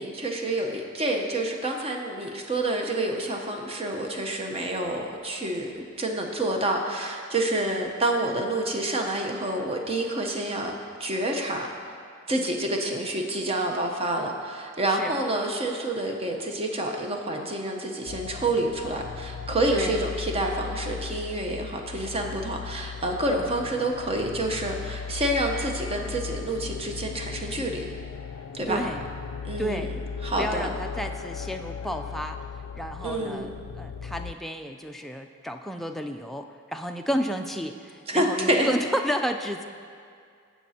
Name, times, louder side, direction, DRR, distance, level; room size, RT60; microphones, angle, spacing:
voice 1, 0.0-10.7 11.0-11.7 12.3-27.9 28.5-28.8 29.4-29.9 30.2-30.7 33.0-33.5 38.1-38.7, right 1 dB, 30° right, 2 dB, 0.8 m, -28 dB
sound 1, 18.1-34.3, left 6 dB, 85° left, 0.3 m, -37 dB
voice 2, 28.7-29.0 29.6-29.9 30.4-32.4 32.8-33.5 33.8-36.5 36.7-39.6, equal, ahead, 4 dB, 0.3 m, -31 dB
18.0 x 6.0 x 2.8 m, 2.3 s
head